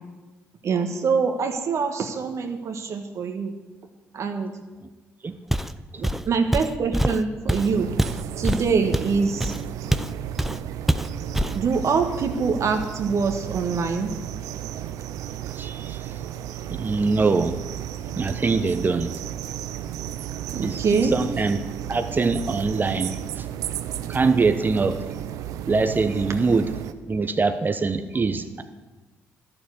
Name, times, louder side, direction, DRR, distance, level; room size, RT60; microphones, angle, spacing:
voice 1, 0.6-3.6 4.1-4.6 6.0-9.5 11.5-14.2 20.5-21.2, right 5 dB, 60° right, 5 dB, 1.4 m, -24 dB
Walk footsteps, 5.5-5.8 6.0-10.1 10.4-10.6 10.9-11.6, equal, 5° right, 0.6 m, -24 dB
sound 1, 7.5-26.9, right 11 dB, 75° right, 0.6 m, -34 dB
voice 2, 15.6-16.0 16.7-17.5 18.2-19.1 20.6-20.8 21.1-21.6 21.9-23.5 24.1-25.0 25.7-26.6 27.1-28.6, right 4 dB, 35° right, 9 dB, 0.9 m, -23 dB
12.0 x 7.0 x 9.5 m, 1.2 s
hypercardioid pair, 55°, 6 cm